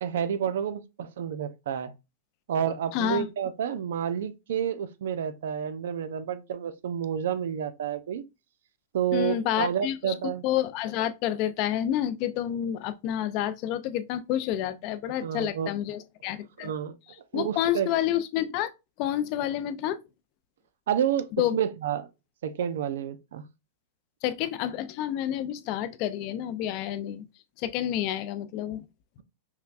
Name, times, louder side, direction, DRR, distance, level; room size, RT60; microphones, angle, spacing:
voice 1, 0.0-1.9 2.5-8.2 8.9-10.4 15.2-15.7 16.6-16.9 17.3-17.9 20.9-22.1 22.4-23.4, right 9 dB, 75° right, 0.5 m, -29 dB
voice 2, 2.9-3.3 9.1-10.1 10.4-16.7 17.3-18.7 19.0-20.0 21.4-21.6 24.2-27.2 27.6-28.9, left 11 dB, 45° left, 0.5 m, -29 dB
5.6 x 2.2 x 2.4 m
hypercardioid pair, 135°, 0 cm